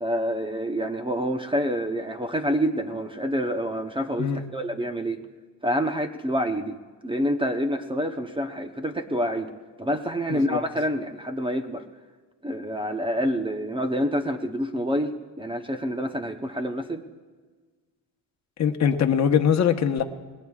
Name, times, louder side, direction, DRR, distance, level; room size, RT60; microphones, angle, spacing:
voice 1, 0.0-5.2 5.6-6.8 7.0-9.5 9.8-11.9 12.4-17.0, equal, 10° right, 6 dB, 0.8 m, -27 dB
voice 2, 18.6-20.0, left 8 dB, 40° left, 5 dB, 1.1 m, -22 dB
28.0 x 20.5 x 2.4 m, 1.4 s
cardioid pair, 135°, 42 cm